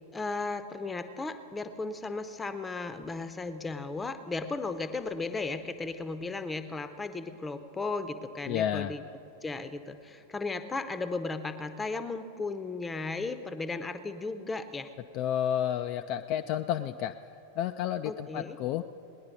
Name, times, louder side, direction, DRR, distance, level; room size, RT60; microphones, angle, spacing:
voice 1, 0.0-9.0 9.4-14.9 18.0-18.6, left 3 dB, 15° left, 11 dB, 0.7 m, -35 dB
voice 2, 8.5-8.9 15.1-17.1 17.6-18.8, left 10 dB, 40° left, 7 dB, 0.3 m, -30 dB
18.5 x 10.5 x 5.2 m, 2.8 s
figure-of-eight pair, 90°, 0 cm